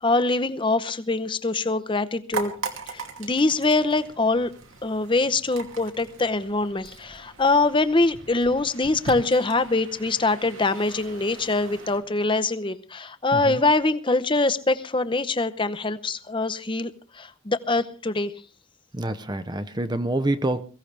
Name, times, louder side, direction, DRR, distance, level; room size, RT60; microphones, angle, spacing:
voice 1, 0.0-2.5 2.9-4.5 4.8-18.3, left 3 dB, 25° left, 0.8 m, -24 dB
sound 1, 2.3-12.0, right 4 dB, 80° right, 2.6 m, -39 dB
voice 2, 18.9-20.6, right 1 dB, 20° right, 0.7 m, -27 dB
22.5 x 15.5 x 3.4 m
head